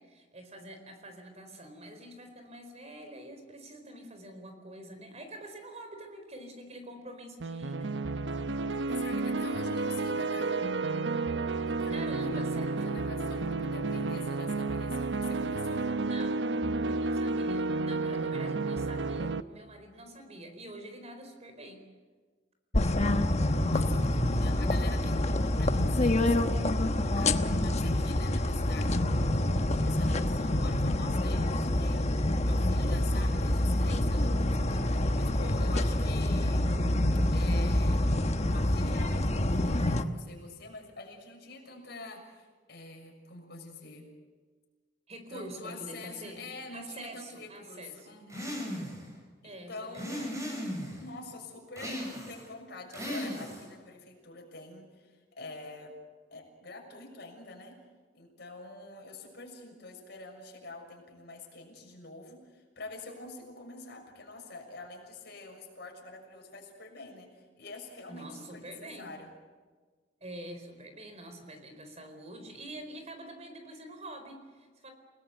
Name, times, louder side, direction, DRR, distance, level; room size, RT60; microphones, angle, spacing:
voice 1, 0.0-8.0 11.9-13.0 16.0-16.4 16.9-21.8 45.1-46.4 46.7-48.1 49.4-50.3 68.1-69.1 70.2-74.9, right 1 dB, 35° right, 6 dB, 4.4 m, -46 dB
sound 1, 7.4-19.4, right 3 dB, 75° right, 0.8 m, -31 dB
voice 2, 8.9-10.6 11.7-15.9 23.7-26.6 27.1-36.6 37.3-38.0 38.5-44.1 45.3-48.6 49.4-50.4 51.0-52.0 52.3-55.9 56.3-57.8 58.1-69.3, left 3 dB, 60° left, 2 dB, 6.7 m, -46 dB
sound 2, 22.7-40.0, left 1 dB, 40° left, 1.2 m, -27 dB
sound 3, 48.3-49.1 49.9-51.0 51.8-52.5 52.9-53.7, equal, 15° right, 7.5 m, -36 dB
30.0 x 19.0 x 8.0 m, 1.4 s
head